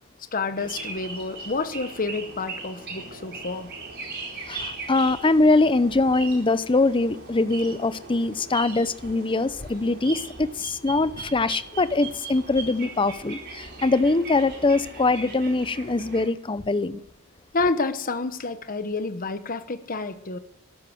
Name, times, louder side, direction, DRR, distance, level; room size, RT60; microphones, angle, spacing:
voice 1, 0.3-3.7 17.5-20.4, left 3 dB, 40° left, 10 dB, 1.1 m, -29 dB
sound 1, 0.6-16.3, right 3 dB, 50° right, 4.5 m, -39 dB
voice 2, 4.5-17.0, left 3 dB, 25° left, 14 dB, 0.6 m, -23 dB
13.5 x 12.5 x 7.8 m, 0.73 s
head